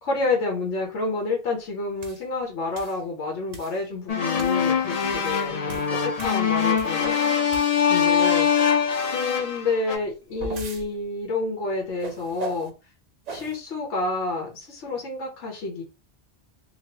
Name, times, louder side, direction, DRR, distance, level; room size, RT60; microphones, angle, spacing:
voice 1, 0.0-7.1 7.9-8.7 9.1-12.7 13.3-15.8, left 3 dB, 90° left, 0 dB, 1.2 m, -29 dB
sound 1, 2.0-2.2 2.8-3.0 3.5-3.8 4.4-4.6 5.1-7.1 7.5-8.0 9.9-10.9 12.0-12.7 13.3-13.6, right 3 dB, 50° right, 0.5 m, -38 dB
sound 2, 4.1-10.0, left 7 dB, 45° left, 0.5 m, -23 dB
3.0 x 2.4 x 2.9 m, 0.30 s
omnidirectional pair, 1.2 m